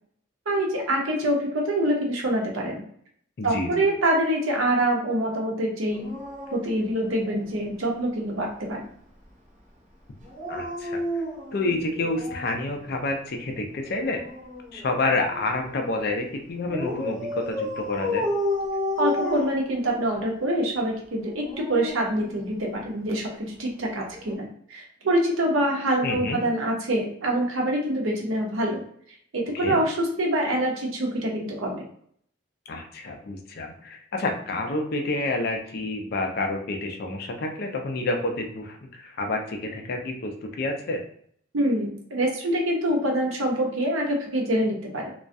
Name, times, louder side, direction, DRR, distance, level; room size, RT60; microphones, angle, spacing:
voice 1, 0.5-2.8 3.4-6.1 6.5-8.9 19.0-28.8 29.3-31.8 41.5-45.1, right 1 dB, 75° right, 0 dB, 0.7 m, -25 dB
voice 2, 3.4-3.8 10.5-11.0 11.5-14.2 14.7-18.2 26.0-26.4 29.5-29.8 32.7-41.0, left 2 dB, 50° left, 3 dB, 0.4 m, -29 dB
Dog, 5.9-7.8 10.2-12.6 13.9-15.5 16.7-20.2 21.2-22.9 24.1-24.3, left 1 dB, 35° right, 0.6 m, -32 dB
2.3 x 2.1 x 2.6 m, 0.63 s
head